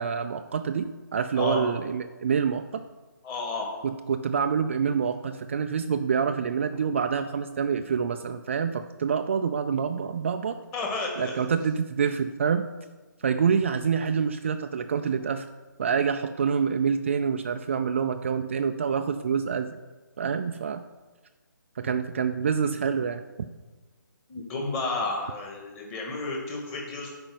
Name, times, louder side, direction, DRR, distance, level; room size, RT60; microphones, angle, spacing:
voice 1, 0.0-2.8 3.8-10.6 11.2-12.7 13.2-15.5 15.8-19.8 20.2-20.8 21.8-23.2, right 6 dB, 35° right, 7 dB, 0.4 m, -27 dB
voice 2, 3.2-3.7 10.7-11.3 24.3-27.1, left 3 dB, 15° left, -1 dB, 1.8 m, -31 dB
8.7 x 5.2 x 7.8 m, 1.3 s
hypercardioid pair, 165°, 11 cm